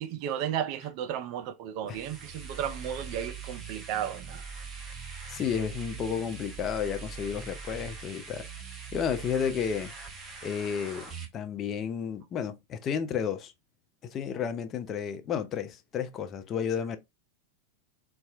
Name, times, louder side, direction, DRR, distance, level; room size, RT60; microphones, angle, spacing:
voice 1, 0.0-4.4, right 10 dB, 45° right, 0.4 m, -34 dB
sound 1, 1.9-11.3, right 5 dB, 20° right, 0.9 m, -42 dB
voice 2, 5.3-8.5 8.9-9.9 10.4-13.5 14.0-17.0, left 7 dB, 30° left, 0.4 m, -32 dB
4.1 x 2.3 x 2.3 m
figure-of-eight pair, 90°, 0 cm